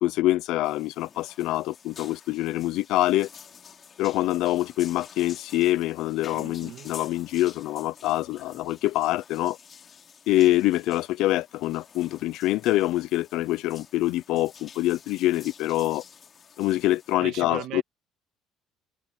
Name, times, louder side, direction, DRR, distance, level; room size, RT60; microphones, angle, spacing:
voice 1, 0.0-3.3 4.0-9.6 10.3-16.0 16.6-17.8, left 16 dB, 70° left, 0.6 m, -25 dB
sound 1, 0.6-17.1, left 7 dB, 35° left, 2.7 m, -49 dB
voice 2, 6.3-6.9 17.2-17.8, right 13 dB, 65° right, 2.4 m, -38 dB
cardioid pair, 135°, 0 cm